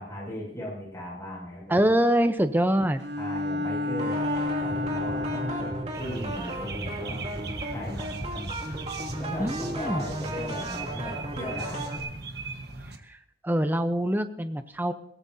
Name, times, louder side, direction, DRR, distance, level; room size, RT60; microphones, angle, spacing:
voice 1, 0.0-1.8 3.2-7.2 7.7-8.1 9.1-11.9, left 1 dB, 20° left, -5 dB, 6.7 m, -37 dB
voice 2, 1.7-3.0 9.4-10.0 13.4-14.9, right 1 dB, 10° right, 9 dB, 0.8 m, -24 dB
Bowed string instrument, 3.0-6.0, left 2 dB, 80° right, 2.2 m, -30 dB
sound 1, 4.0-12.0, right 1 dB, 35° right, 2.8 m, -35 dB
sound 2, 5.9-13.0, right 4 dB, 60° right, 1.4 m, -39 dB
21.5 x 17.0 x 2.8 m, 0.71 s
head